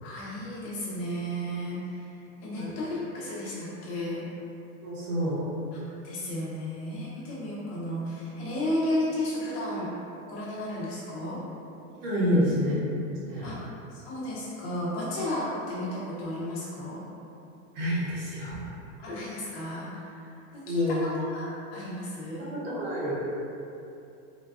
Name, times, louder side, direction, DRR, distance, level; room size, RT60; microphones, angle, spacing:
voice 1, 0.0-2.1 2.4-4.2 5.7-9.9 10.3-11.4 12.3-12.4 13.4-13.6 13.9-17.1 19.0-22.5, left 1 dB, 45° left, -6 dB, 0.9 m, -33 dB
voice 2, 4.8-5.4 11.9-12.7 13.3-13.5 17.7-18.6 20.7-21.0 22.5-23.3, equal, 45° right, -7 dB, 1.0 m, -28 dB
3.9 x 2.2 x 2.4 m, 2.7 s
supercardioid pair, 155°, 44 cm